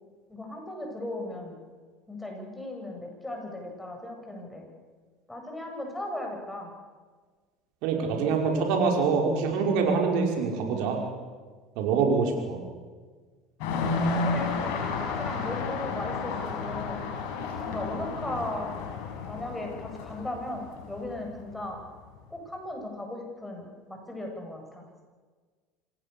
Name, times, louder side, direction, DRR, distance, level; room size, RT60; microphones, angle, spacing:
voice 1, 0.3-1.6 2.1-4.7 5.3-6.7 14.2-14.5 15.0-17.0 17.6-18.7 19.3-21.8 22.3-24.9, left 1 dB, 10° left, 2 dB, 8.0 m, -37 dB
voice 2, 7.8-11.0 11.8-12.6, right 5 dB, 65° right, 2 dB, 5.5 m, -25 dB
sound 1, 13.6-21.9, left 4 dB, 70° left, 5.8 m, -32 dB
26.0 x 19.0 x 7.2 m, 1.5 s
hypercardioid pair, 75°, 0 cm